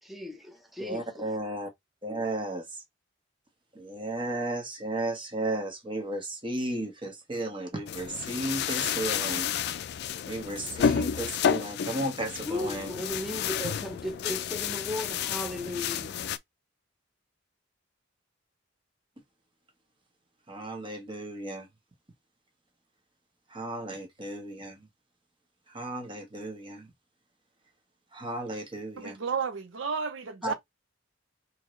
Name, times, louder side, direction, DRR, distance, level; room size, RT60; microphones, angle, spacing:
voice 1, 0.0-1.3 12.5-16.2 30.4-30.5, left 1 dB, ahead, 0.7 m, -36 dB
voice 2, 0.8-1.7 2.0-2.7 3.7-9.5 10.3-12.9 20.5-21.7 23.5-24.8 25.7-26.9 28.1-29.2, right 1 dB, 25° right, 1.1 m, -34 dB
sound 1, 7.9-16.4, left 8 dB, 60° left, 0.4 m, -31 dB
voice 3, 29.0-30.5, right 5 dB, 70° right, 0.6 m, -32 dB
3.6 x 2.8 x 3.1 m
head